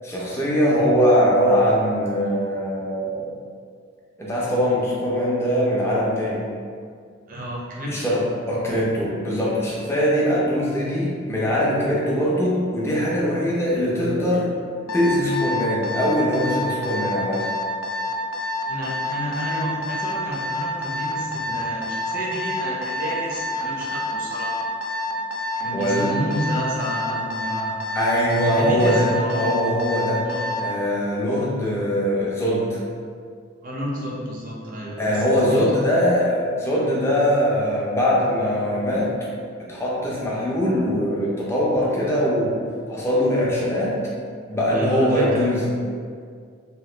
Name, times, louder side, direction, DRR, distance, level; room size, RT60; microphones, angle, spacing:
voice 1, 0.0-3.3 4.2-6.5 7.9-14.5 14.9-17.4 25.7-26.1 27.9-29.1 29.4-30.2 30.6-32.8 35.0-39.1 39.6-42.6 42.9-44.0 44.5-45.7, equal, 10° left, -6 dB, 0.5 m, -21 dB
voice 2, 7.3-7.9 18.7-24.7 25.6-27.8 28.6-29.6 30.2-30.6 33.6-35.6 44.7-45.5, equal, 40° right, -4 dB, 0.6 m, -30 dB
Alarm, 14.9-30.7, left 2 dB, 75° left, 0.4 m, -28 dB
2.8 x 2.3 x 3.2 m, 2.1 s
head